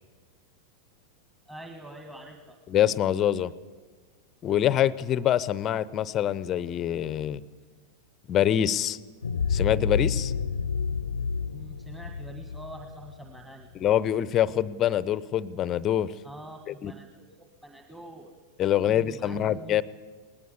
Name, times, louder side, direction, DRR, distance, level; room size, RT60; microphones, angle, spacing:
voice 1, 1.5-2.6 11.5-13.7 16.2-18.3 18.8-19.8, right 1 dB, 10° right, 4 dB, 1.8 m, -45 dB
voice 2, 2.7-3.5 4.4-7.4 8.3-9.0 9.5-10.3 13.8-16.1 16.7-16.9 18.6-19.8, left 11 dB, 30° left, 19 dB, 0.8 m, -25 dB
sound 1, 9.2-14.0, left 5 dB, 70° left, 0.7 m, -29 dB
20.5 x 19.5 x 8.3 m, 1.4 s
figure-of-eight pair, 90°, 0 cm